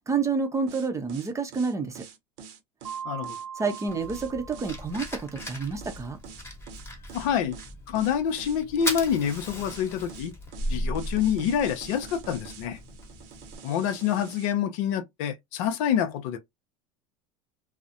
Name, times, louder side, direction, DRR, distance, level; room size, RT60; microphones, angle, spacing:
voice 1, 0.1-2.0 3.6-6.2, right 4 dB, 15° right, 0.6 m, -29 dB
sound 1, 0.7-14.5, right 6 dB, 60° right, 0.7 m, -46 dB
Mallet percussion, 2.8-5.5, right 7 dB, 90° right, 0.9 m, -40 dB
voice 2, 3.0-3.4 7.1-7.6 7.9-10.3 10.7-12.8 13.6-16.4, left 8 dB, 65° left, 0.6 m, -27 dB
Fire, 3.9-13.6, equal, 15° left, 1.0 m, -37 dB
2.3 x 2.0 x 2.7 m
hypercardioid pair, 95°, 19 cm